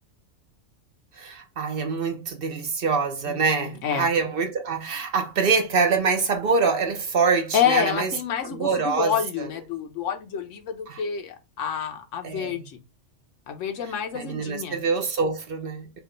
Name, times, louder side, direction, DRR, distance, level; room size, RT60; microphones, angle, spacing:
voice 1, 1.2-8.1 8.5-9.5 10.9-11.0 12.2-12.6 14.1-16.0, right 5 dB, 55° right, 0.8 m, -25 dB
voice 2, 3.3-4.1 7.5-12.8 13.5-14.8, left 8 dB, 80° left, 1.1 m, -28 dB
5.1 x 2.4 x 3.0 m
omnidirectional pair, 1.3 m